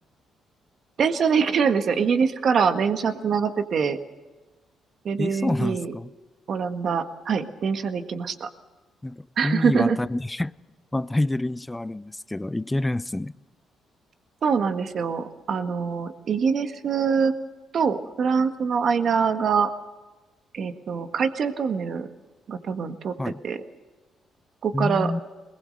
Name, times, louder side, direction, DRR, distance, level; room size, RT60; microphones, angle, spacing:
voice 1, 1.0-4.0 5.1-5.9 6.5-8.5 9.4-10.0 14.4-17.3 17.7-19.7 20.5-22.1 22.5-23.1 23.4-23.6 24.6-25.1, right 6 dB, 55° right, 1.6 m, -24 dB
voice 2, 5.2-6.1 9.0-10.5 10.9-13.3 23.2-23.4 24.7-25.2, left 2 dB, 10° left, 0.6 m, -27 dB
22.0 x 20.5 x 6.6 m
cardioid pair, 90°, 0 cm